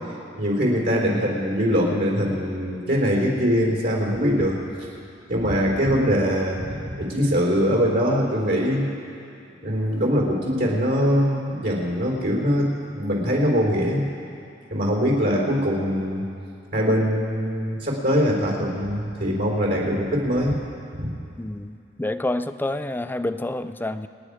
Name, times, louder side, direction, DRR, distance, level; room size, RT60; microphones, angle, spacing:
voice 1, 0.4-4.6 5.3-8.8 9.6-12.7 12.9-14.0 14.7-16.2 16.7-20.6 20.9-21.1, equal, 60° right, -2 dB, 4.0 m, -22 dB
voice 2, 0.9-1.3 5.9-6.3 21.4-24.1, left 1 dB, 10° left, 11 dB, 0.4 m, -29 dB
27.5 x 9.9 x 5.0 m, 2.6 s
head